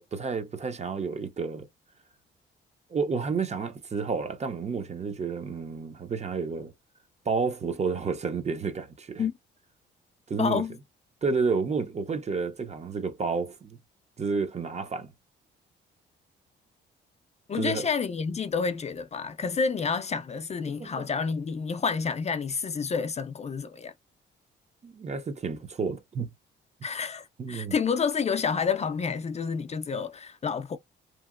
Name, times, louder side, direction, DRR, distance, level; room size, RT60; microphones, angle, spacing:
voice 1, 0.0-1.7 2.9-6.7 7.3-9.2 10.3-10.6 11.2-13.8 14.2-15.1 17.6-17.9 20.8-21.1 24.8-26.3 27.4-27.8, right 5 dB, 35° right, 0.6 m, -30 dB
voice 2, 10.4-10.8 17.5-23.9 26.8-30.8, left 5 dB, 35° left, 0.4 m, -29 dB
2.9 x 2.7 x 2.4 m
cardioid pair, 90°, 20 cm